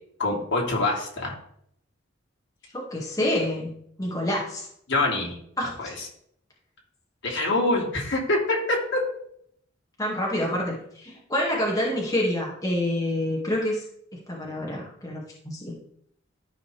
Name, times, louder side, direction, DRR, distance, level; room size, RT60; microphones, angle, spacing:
voice 1, 0.2-1.4 4.9-5.4 5.6-6.1 7.2-9.0, left 2 dB, 65° left, -2 dB, 2.8 m, -25 dB
voice 2, 2.7-3.7 4.0-4.7 5.6-6.0 10.0-13.8 14.1-15.8, left 1 dB, 20° left, -3 dB, 2.0 m, -27 dB
13.0 x 5.4 x 3.4 m, 0.68 s
head